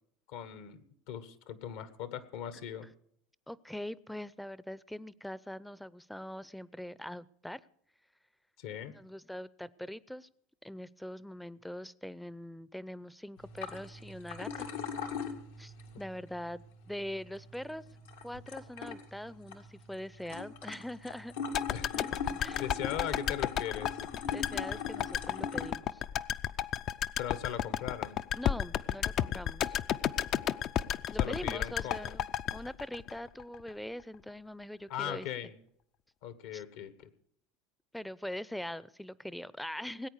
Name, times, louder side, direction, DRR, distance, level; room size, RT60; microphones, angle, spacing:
voice 1, 0.3-2.9 8.6-9.0 21.7-24.0 27.2-28.2 31.2-32.2 34.9-35.6 36.2-37.1, left 10 dB, 75° left, 13 dB, 1.4 m, -39 dB
voice 2, 3.5-7.6 8.9-10.3 10.6-14.7 15.6-17.8 18.2-21.3 21.9-22.6 24.1-26.0 28.3-29.8 31.1-32.3 32.5-35.3 36.5-36.6 37.9-40.1, left 1 dB, 5° left, 20 dB, 0.5 m, -42 dB
sound 1, 13.4-25.7, left 6 dB, 90° left, 2.0 m, -42 dB
sound 2, 21.5-33.7 34.0-34.1, left 10 dB, 50° left, 0.5 m, -33 dB
19.0 x 8.8 x 6.6 m, 0.67 s
supercardioid pair, 95°, 0 cm